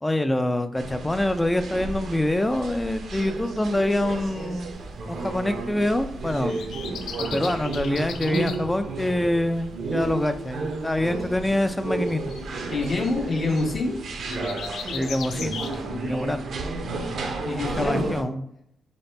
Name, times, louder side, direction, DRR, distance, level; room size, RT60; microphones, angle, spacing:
voice 1, 0.0-4.8 5.1-6.6 7.2-12.2 14.9-15.6 16.0-16.5 17.6-18.4, left 1 dB, 10° left, 9 dB, 0.4 m, -25 dB
sound 1, 0.8-18.2, right 3 dB, 65° right, 0.6 m, -32 dB
sound 2, 4.2-4.5 6.3-8.6 11.0-11.2 12.1-13.7 14.2-15.8, left 7 dB, 85° left, 0.4 m, -37 dB
voice 2, 12.7-14.0 17.4-18.3, left 3 dB, 45° left, -1 dB, 1.0 m, -26 dB
4.2 x 3.9 x 3.3 m, 0.74 s
cardioid pair, 105°, 0 cm